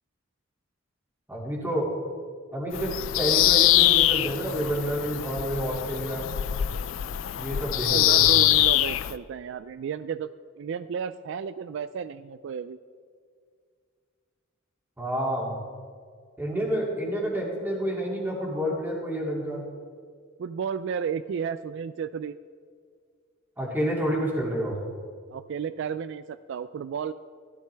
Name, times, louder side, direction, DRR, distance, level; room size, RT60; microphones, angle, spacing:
voice 1, 1.3-1.9 2.5-6.3 7.4-8.4 15.0-15.6 16.4-19.6 23.6-24.8, right 1 dB, 10° right, -3 dB, 2.5 m, -29 dB
Bird vocalization bird call bird song, 2.7-9.1, left 14 dB, 75° left, 0.4 m, -23 dB
voice 2, 7.8-12.8 16.5-16.6 20.4-22.4 25.3-27.1, right 7 dB, 65° right, 14 dB, 0.3 m, -33 dB
15.5 x 12.5 x 3.4 m, 2.1 s
head